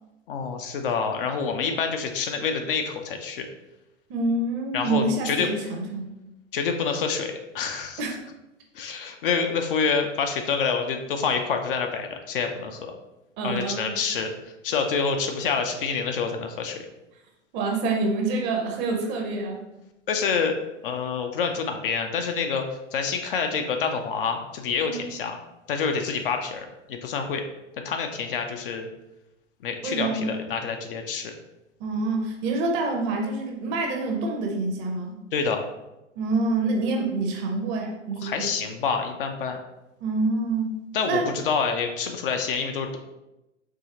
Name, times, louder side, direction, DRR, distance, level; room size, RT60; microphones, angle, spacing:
voice 1, 0.3-3.5 4.7-5.5 6.5-8.0 8.7-12.9 13.4-14.3 14.6-16.9 20.1-20.5 20.8-22.6 22.9-25.4 25.7-27.4 27.8-28.9 29.6-31.3 35.3-35.6 38.2-39.6 40.9-43.0, left 5 dB, 50° left, 5 dB, 0.5 m, -27 dB
voice 2, 4.1-6.1 8.0-8.1 13.4-14.0 17.5-19.6 24.8-25.1 29.8-30.3 31.8-35.2 36.2-38.5 40.0-41.3, right 3 dB, 30° right, 2 dB, 0.7 m, -27 dB
4.7 x 3.0 x 2.8 m, 0.96 s
figure-of-eight pair, 105°, 37 cm